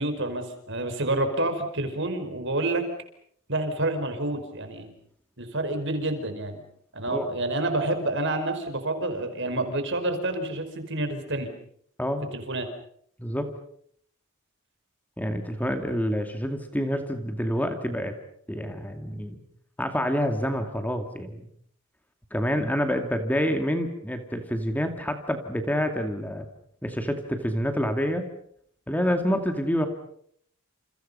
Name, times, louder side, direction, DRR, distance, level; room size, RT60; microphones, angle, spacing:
voice 1, 0.0-2.8 3.5-4.9 5.4-6.6 6.9-11.5 12.3-12.7, right 2 dB, 55° right, 8 dB, 5.1 m, -28 dB
voice 2, 13.2-13.5 15.2-18.1 18.5-19.4 19.8-21.4 22.3-26.5 26.8-28.3 28.9-29.9, equal, 5° left, 6 dB, 2.3 m, -27 dB
29.5 x 29.0 x 5.6 m, 0.65 s
head